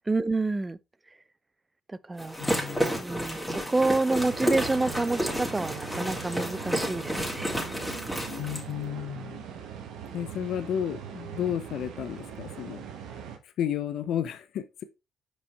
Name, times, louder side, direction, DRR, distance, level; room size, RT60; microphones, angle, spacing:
voice 1, 0.1-0.8 2.1-2.5 2.9-7.5, right 2 dB, 20° right, 0.5 m, -28 dB
sound 1, 2.2-8.6, equal, ahead, 2.6 m, -31 dB
voice 2, 2.4-3.0 8.3-9.5 10.1-12.8 13.4-14.8, left 9 dB, 70° left, 0.7 m, -32 dB
sound 2, 4.2-13.4, right 8 dB, 75° right, 1.2 m, -41 dB
5.5 x 5.3 x 3.4 m
hypercardioid pair, 50°, 0 cm